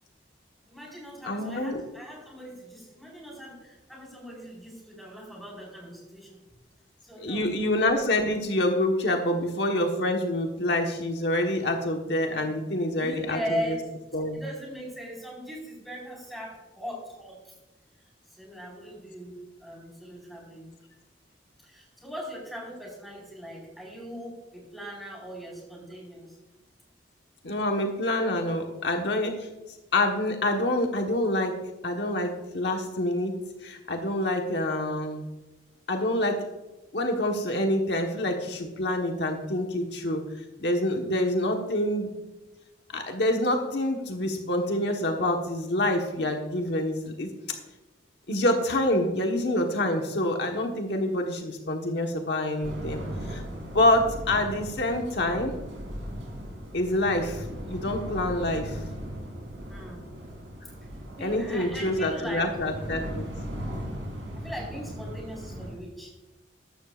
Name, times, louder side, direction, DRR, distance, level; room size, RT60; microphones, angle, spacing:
voice 1, 0.7-6.4 7.0-7.4 12.9-13.9 14.3-17.5 18.0-20.7 21.6-26.4 59.7-60.0 61.1-62.5 64.3-66.1, equal, ahead, -3 dB, 4.5 m, -39 dB
voice 2, 1.2-1.8 7.2-13.8 14.1-14.4 27.4-29.5 29.9-31.5 31.8-33.4 33.6-35.2 35.9-36.4 36.9-40.2 40.6-42.2 42.9-47.3 48.3-53.4 53.7-55.5 56.7-58.8 61.2-63.3, left 1 dB, 65° left, 2 dB, 1.3 m, -27 dB
sound 1, 52.6-65.7, equal, 90° right, 3.7 m, -38 dB
14.5 x 12.0 x 2.5 m, 1.1 s
head